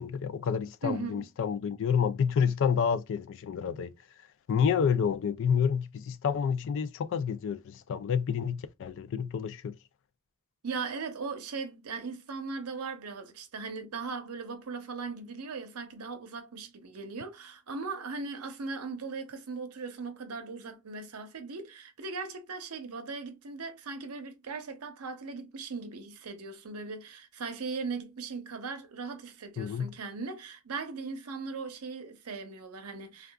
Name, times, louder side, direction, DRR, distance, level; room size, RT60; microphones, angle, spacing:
voice 1, 0.0-3.9 4.5-9.7 29.6-29.9, left 7 dB, 60° left, 0.3 m, -29 dB
voice 2, 0.8-1.3 10.6-33.3, right 4 dB, 90° right, 0.7 m, -38 dB
3.5 x 2.3 x 2.2 m
head